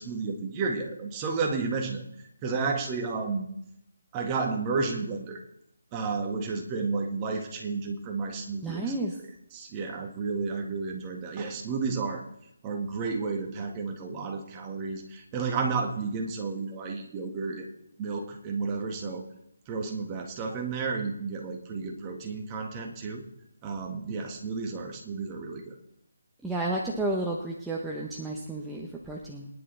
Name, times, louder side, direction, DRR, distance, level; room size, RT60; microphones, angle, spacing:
voice 1, 0.0-2.0 2.4-3.5 4.1-5.4 5.9-8.8 9.5-12.2 12.6-17.7 18.0-19.2 19.7-23.3 23.6-25.8, right 4 dB, 20° right, 2 dB, 1.8 m, -32 dB
voice 2, 8.6-9.1 26.4-29.5, right 2 dB, 5° right, -4 dB, 1.0 m, -31 dB
22.5 x 10.5 x 3.4 m, 0.77 s
figure-of-eight pair, 165°, 0 cm